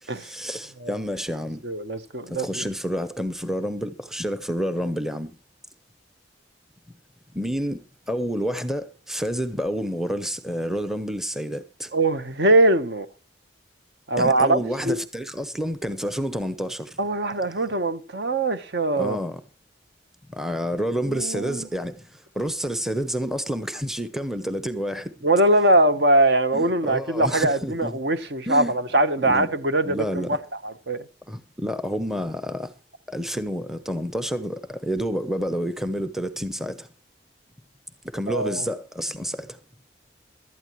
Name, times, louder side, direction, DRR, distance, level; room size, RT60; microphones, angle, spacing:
voice 1, 0.0-1.6 2.3-5.4 7.3-11.9 14.2-17.0 19.0-19.4 20.3-25.1 26.5-27.9 28.5-28.7 29.3-29.5 29.8-30.4 31.3-32.7 33.1-36.9 38.1-39.6, equal, ahead, 0.7 m, -29 dB
voice 2, 1.6-2.6 11.9-13.1 14.1-15.0 17.0-19.2 21.1-21.7 25.2-30.4 30.6-31.0 38.3-38.6, right 2 dB, 60° right, 1.1 m, -22 dB
17.5 x 12.0 x 3.1 m
head